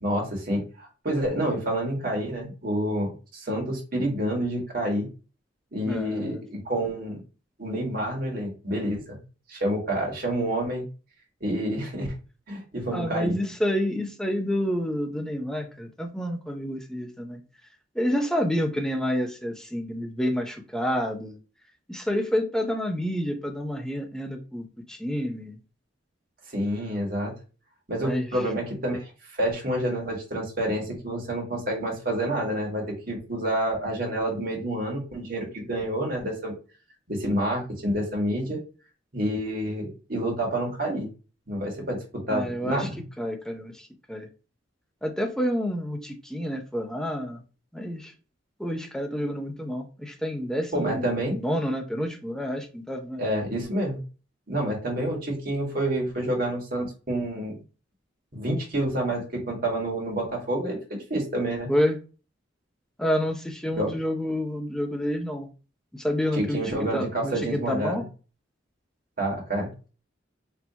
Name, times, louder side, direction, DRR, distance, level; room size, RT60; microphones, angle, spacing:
voice 1, 0.0-5.1 5.7-7.2 7.6-9.2 9.5-10.9 11.4-12.1 12.5-13.4 26.5-27.3 27.9-36.5 37.1-38.6 39.1-41.1 41.5-42.0 42.3-43.0 50.7-51.4 53.2-54.0 54.5-57.6 58.3-61.7 63.8-63.9 66.4-68.0 69.2-69.9, right 1 dB, 50° right, -1 dB, 1.7 m, -28 dB
voice 2, 5.8-6.4 12.9-17.4 17.9-21.4 21.9-25.5 28.0-28.2 42.3-42.9 43.2-44.3 45.0-47.4 47.7-48.1 48.6-53.2 61.7-62.0 63.0-65.5 65.9-66.6 66.9-68.1, equal, 5° left, 3 dB, 0.7 m, -29 dB
4.4 x 3.0 x 2.7 m, 0.34 s
head